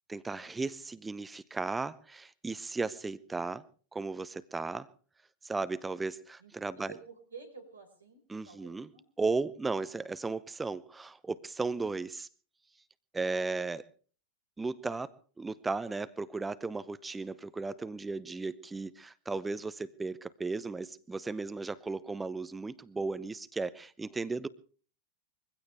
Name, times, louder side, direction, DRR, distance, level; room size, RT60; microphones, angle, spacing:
voice 1, 0.1-3.6 3.9-4.9 5.4-6.9 8.3-8.9 9.2-12.3 13.1-13.8 14.6-15.1 15.4-24.5, right 3 dB, 10° right, 15 dB, 0.7 m, -35 dB
voice 2, 6.4-9.1, right 5 dB, 75° right, 5 dB, 5.2 m, -51 dB
23.0 x 16.0 x 3.5 m, 0.42 s
figure-of-eight pair, 90°, 0 cm